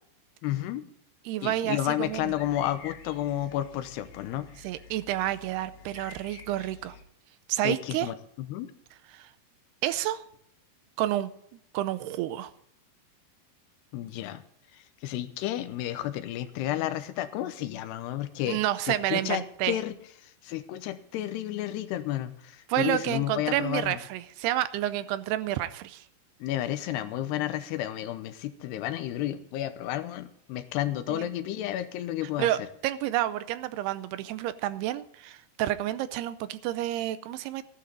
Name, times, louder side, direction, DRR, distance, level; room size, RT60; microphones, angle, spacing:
voice 1, 0.4-0.9 1.4-4.5 7.6-8.7 13.9-14.4 14.7-18.6 18.9-19.9 20.2-24.0 26.4-32.5, left 13 dB, 85° left, 11 dB, 2.9 m, -31 dB
voice 2, 1.3-2.3 4.6-7.0 7.5-8.1 9.1-9.3 9.8-10.2 11.0-11.3 11.7-12.5 18.4-19.8 22.7-26.0 31.1-31.3 32.4-37.6, right 13 dB, 80° right, 13 dB, 2.6 m, -29 dB
sound 1, 2.0-7.0, left 5 dB, 65° left, 1.7 m, -49 dB
14.5 x 11.5 x 3.9 m, 0.70 s
omnidirectional pair, 4.8 m